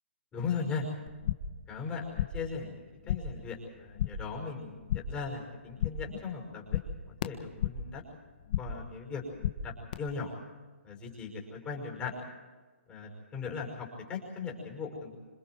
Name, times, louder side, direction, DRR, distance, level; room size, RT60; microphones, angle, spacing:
voice 1, 0.3-0.9 1.7-2.8 3.1-6.8 7.2-8.0 8.6-9.2 9.6-9.7 10.0-10.3 10.8-12.1 12.9-15.2, left 5 dB, 15° left, 0 dB, 5.5 m, -38 dB
sound 1, 1.1-1.6 1.9-2.5 2.8-3.4 3.7-4.3 4.6-5.3 5.5-6.2 6.4-7.9 8.2-8.9 9.1-9.9, left 9 dB, 40° left, 1.5 m, -35 dB
27.0 x 26.5 x 4.7 m, 1.4 s
hypercardioid pair, 160°, 7 cm